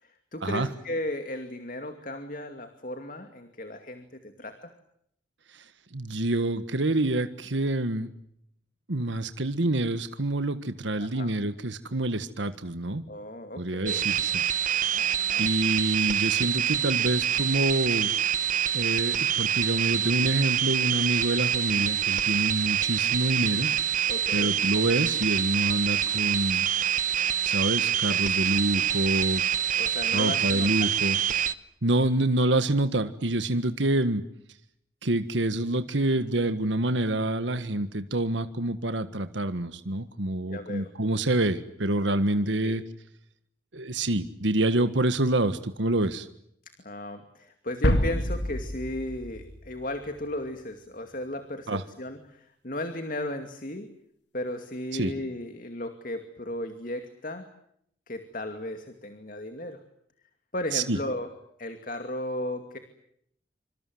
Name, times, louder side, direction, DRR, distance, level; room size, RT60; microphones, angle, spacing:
voice 1, 0.0-4.7 11.0-11.4 13.1-14.0 14.9-15.5 24.1-24.5 28.0-28.3 29.8-30.9 36.0-36.2 40.5-40.9 42.6-42.8 46.8-53.9 54.3-57.5 58.1-59.8 60.5-61.3 61.6-62.8, left 1 dB, 45° left, 7 dB, 2.5 m, -35 dB
voice 2, 5.9-8.1 8.9-13.0 13.6-14.4 15.4-18.1 18.7-23.7 24.3-26.7 27.4-29.4 30.1-31.2 31.8-34.2 35.0-42.8 43.7-46.3 51.7-51.8 54.9-55.1 60.7-61.0, right 1 dB, 85° right, 10 dB, 1.6 m, -27 dB
sound 1, 13.9-31.5, right 10 dB, 45° right, 1.1 m, -26 dB
sound 2, 47.8-50.3, equal, 75° left, 3.2 m, -28 dB
27.0 x 26.5 x 7.9 m, 0.73 s
head